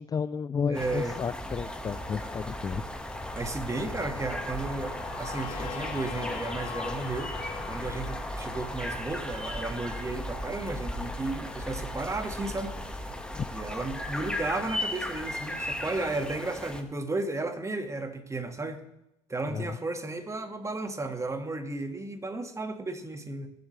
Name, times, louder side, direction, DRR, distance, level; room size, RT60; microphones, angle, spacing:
voice 1, 0.0-2.8 13.3-13.5 19.5-19.8, left 6 dB, 25° left, 14 dB, 0.4 m, -32 dB
sound 1, 0.7-16.8, left 1 dB, 5° left, 1.6 m, -36 dB
voice 2, 0.7-1.1 3.3-7.3 7.7-12.7 13.5-18.8 19.3-23.5, right 2 dB, 20° right, 7 dB, 1.7 m, -34 dB
sound 2, 4.5-10.4, left 7 dB, 70° left, 1.7 m, -43 dB
21.5 x 7.7 x 3.2 m, 0.88 s
hypercardioid pair, 65°, 14 cm